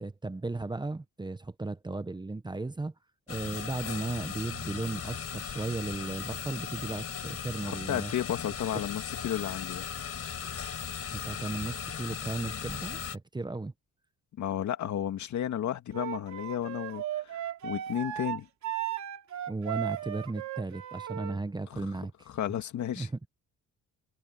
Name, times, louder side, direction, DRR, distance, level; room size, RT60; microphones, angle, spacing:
voice 1, 0.0-2.9 3.3-8.1 8.7-8.8 11.1-13.7 19.5-22.3 23.0-23.1, right 3 dB, 15° right, 1.1 m, -35 dB
sound 1, 3.3-13.2, left 7 dB, 50° left, 5.3 m, -38 dB
voice 2, 7.6-9.9 14.4-18.5 21.7-21.8 22.3-23.1, left 10 dB, 70° left, 2.4 m, -33 dB
Wind instrument woodwind instrument, 15.9-21.4, right 12 dB, 70° right, 3.1 m, -36 dB
cardioid pair, 90°, 30 cm